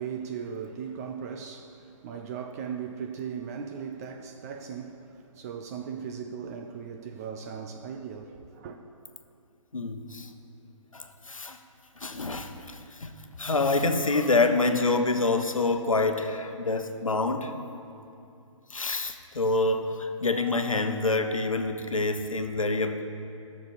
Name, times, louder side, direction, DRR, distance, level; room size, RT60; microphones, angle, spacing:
voice 1, 0.0-8.8, right 7 dB, 30° right, 0.5 m, -38 dB
voice 2, 9.7-10.3 10.9-11.6 12.0-17.5 18.7-23.0, left 3 dB, 85° left, 0.9 m, -27 dB
13.0 x 6.8 x 6.5 m
figure-of-eight pair, 135°, 17 cm